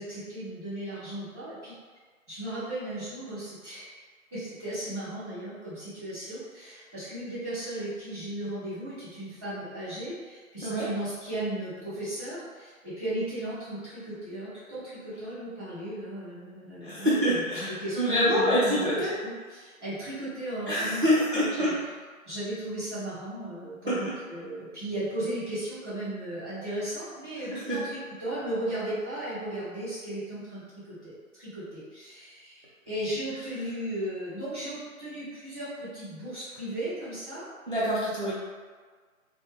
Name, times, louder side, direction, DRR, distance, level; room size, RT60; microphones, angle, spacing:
voice 1, 0.0-1.7 2.3-4.0 4.3-21.7 22.2-37.4, right 1 dB, 5° left, -27 dB, 0.8 m, -36 dB
voice 2, 16.8-19.1 20.7-21.8 23.9-24.1 27.5-27.8 37.7-38.3, equal, 40° right, -9 dB, 0.4 m, -26 dB
2.5 x 2.1 x 3.2 m, 1.5 s
figure-of-eight pair, 150°, 42 cm